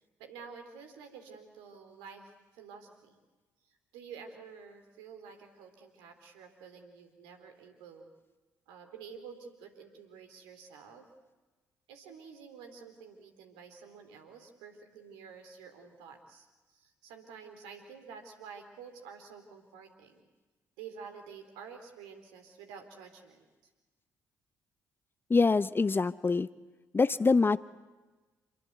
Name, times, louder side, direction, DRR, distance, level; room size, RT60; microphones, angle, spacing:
voice 1, 0.2-3.2 3.7-8.1 8.7-11.1 11.9-20.2 20.8-23.5, right 6 dB, 70° right, 6 dB, 3.7 m, -50 dB
voice 2, 25.3-26.5 26.9-27.6, left 4 dB, 25° left, 18 dB, 0.8 m, -25 dB
28.0 x 22.0 x 8.2 m, 1.2 s
figure-of-eight pair, 45°, 8 cm